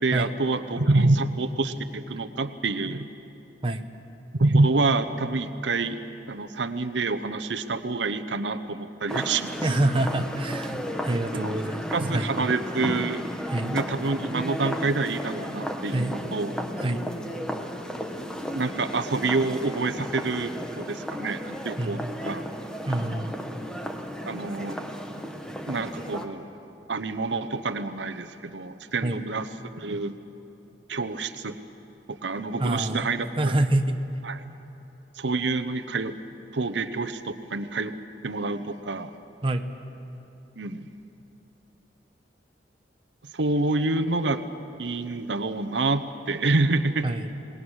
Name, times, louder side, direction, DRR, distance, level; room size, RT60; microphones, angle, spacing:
voice 1, 0.0-3.1 4.3-6.0 6.3-9.6 11.3-11.6 11.9-13.2 13.7-16.5 18.5-22.0 22.2-22.4 24.2-24.8 25.7-26.5 26.9-30.2 30.9-31.6 32.1-33.5 34.3-34.4 35.2-36.1 36.5-37.9 38.2-39.1 40.6-40.9 43.3-44.4 44.8-47.1, right 3 dB, 80° right, 10 dB, 0.9 m, -27 dB
sound 1, 9.1-26.2, equal, 5° left, 1.2 m, -34 dB
voice 2, 9.6-10.8 11.0-12.3 13.5-13.8 15.9-16.2 16.8-17.1 21.8-22.1 22.8-23.5 29.0-29.2 32.6-34.0 39.4-39.7 47.0-47.4, right 1 dB, 30° right, 6 dB, 1.0 m, -27 dB
28.0 x 20.0 x 6.4 m, 2.9 s
head